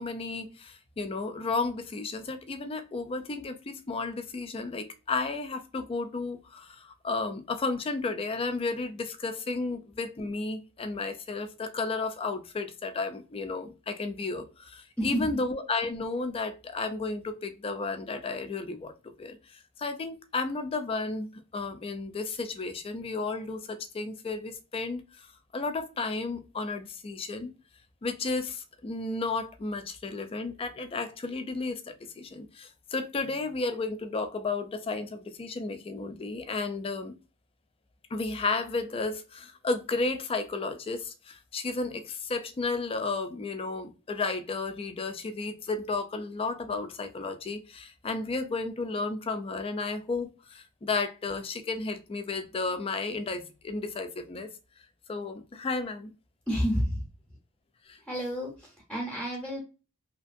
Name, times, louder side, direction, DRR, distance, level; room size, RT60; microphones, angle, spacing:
voice 1, 0.0-18.9 19.2-25.3 25.5-27.5 28.0-37.1 38.1-54.5 55.1-56.1 57.9-58.0, left 3 dB, 25° left, 0.3 m, -33 dB
voice 2, 15.0-15.3 56.5-57.0 58.0-59.6, equal, 5° left, 0.7 m, -30 dB
2.8 x 2.5 x 2.5 m
head